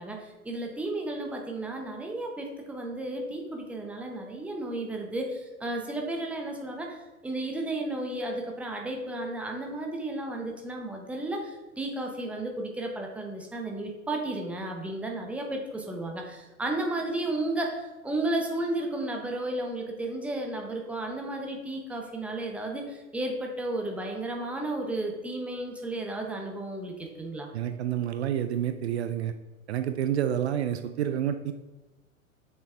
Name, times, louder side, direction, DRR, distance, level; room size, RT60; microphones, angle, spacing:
voice 1, 0.0-27.5, right 2 dB, 5° right, 1 dB, 0.8 m, -33 dB
voice 2, 27.5-29.3 29.7-31.5, right 10 dB, 50° right, 9 dB, 0.5 m, -29 dB
6.8 x 6.6 x 3.4 m, 1.2 s
figure-of-eight pair, 100°, 42 cm